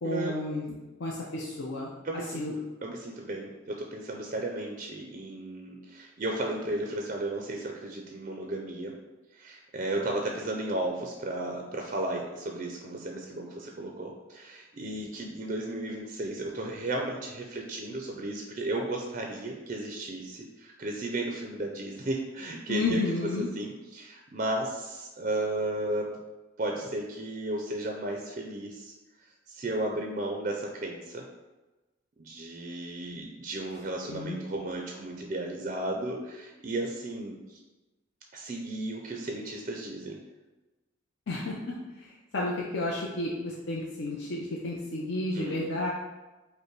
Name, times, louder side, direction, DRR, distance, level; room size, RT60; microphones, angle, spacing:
voice 1, 0.0-1.9 2.3-2.5 22.7-23.5 34.1-34.4 41.3-45.9, left 2 dB, 60° left, -4 dB, 0.6 m, -32 dB
voice 2, 2.0-2.4 2.8-9.0 9.3-23.0 23.4-26.1 26.6-28.9 29.5-31.3 32.2-37.6 38.3-40.2 45.3-45.6, right 2 dB, 35° right, 1 dB, 0.4 m, -34 dB
5.3 x 2.1 x 4.5 m, 1.1 s
head